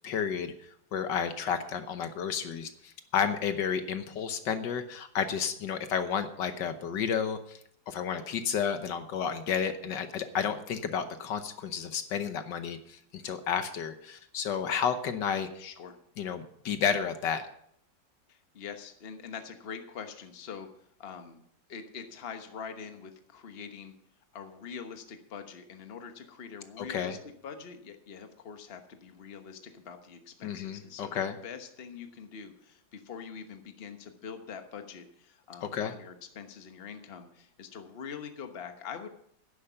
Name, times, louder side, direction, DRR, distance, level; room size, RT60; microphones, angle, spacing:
voice 1, 0.0-7.6 7.9-15.6 16.2-17.4 26.8-27.2 30.4-31.4 35.6-35.9, left 7 dB, 75° left, 9 dB, 1.5 m, -31 dB
voice 2, 15.6-16.0 18.3-21.4 21.7-23.9 24.3-27.2 27.4-31.1 31.4-39.1, left 6 dB, 35° left, 6 dB, 1.2 m, -44 dB
11.5 x 10.0 x 5.7 m, 0.69 s
omnidirectional pair, 2.0 m